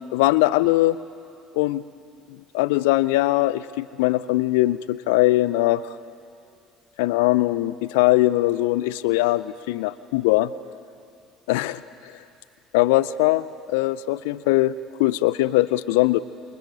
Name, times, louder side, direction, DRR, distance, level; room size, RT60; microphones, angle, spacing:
voice 1, 0.1-1.0 1.5-1.8 2.5-5.8 7.0-10.5 11.5-11.8 12.7-16.2, left 17 dB, 70° left, 17 dB, 0.5 m, -21 dB
28.0 x 28.0 x 4.1 m, 2.5 s
figure-of-eight pair, 55°, 0 cm